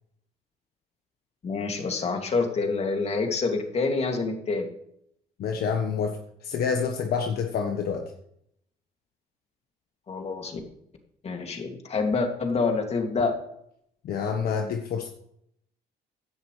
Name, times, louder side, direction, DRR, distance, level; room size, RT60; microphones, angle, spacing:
voice 1, 1.4-4.7 10.1-10.6 11.2-13.3, left 4 dB, 40° left, 4 dB, 2.6 m, -27 dB
voice 2, 5.4-8.1 14.0-15.1, left 6 dB, 65° left, 4 dB, 1.4 m, -28 dB
16.5 x 10.5 x 3.4 m, 0.72 s
cardioid pair, 110°, 17 cm